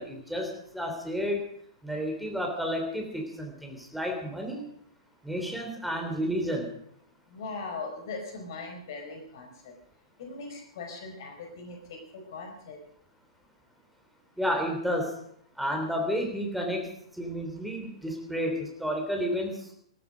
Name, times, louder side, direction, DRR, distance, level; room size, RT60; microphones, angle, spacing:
voice 1, 0.0-1.5 1.8-4.6 5.2-6.7 14.4-15.2 15.6-19.7, equal, ahead, 2 dB, 3.5 m, -31 dB
voice 2, 7.3-9.7 10.2-12.8, left 3 dB, 50° left, 3 dB, 4.6 m, -40 dB
19.5 x 13.5 x 5.1 m, 0.68 s
figure-of-eight pair, 110°, 3 cm